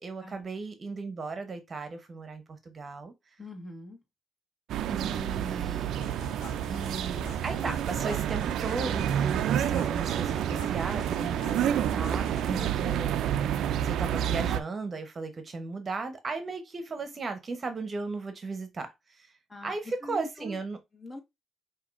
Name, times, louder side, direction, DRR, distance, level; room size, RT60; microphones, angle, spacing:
voice 1, 0.0-3.1 4.9-6.0 6.7-13.5 13.8-19.3 19.6-20.8, right 3 dB, 35° right, 0.9 m, -36 dB
voice 2, 3.4-4.0 19.5-20.6 20.9-21.2, left 1 dB, 30° left, 1.5 m, -43 dB
sound 1, 4.7-14.6, right 10 dB, 80° right, 0.3 m, -29 dB
sound 2, 6.0-12.7, left 6 dB, 90° left, 0.8 m, -47 dB
5.7 x 2.7 x 2.5 m
cardioid pair, 90°, 0 cm